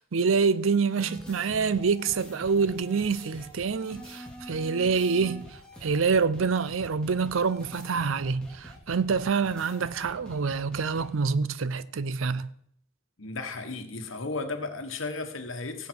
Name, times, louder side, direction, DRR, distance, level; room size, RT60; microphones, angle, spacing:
voice 1, 0.0-5.4 5.8-12.5, right 5 dB, 80° right, 0.6 m, -26 dB
sound 1, 0.9-11.1, equal, 5° left, 2.6 m, -45 dB
voice 2, 13.2-15.9, left 3 dB, 75° left, 1.6 m, -34 dB
17.5 x 7.6 x 4.7 m
head